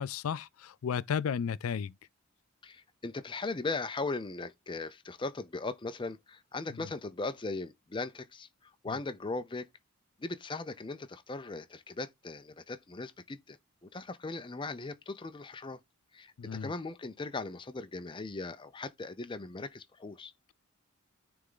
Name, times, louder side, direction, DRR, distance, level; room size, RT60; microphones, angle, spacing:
voice 1, 0.0-1.9 16.4-16.7, left 7 dB, 80° left, 0.4 m, -33 dB
voice 2, 2.6-9.7 10.2-15.8 16.1-20.3, left 3 dB, 25° left, 0.5 m, -38 dB
9.4 x 3.5 x 3.8 m
head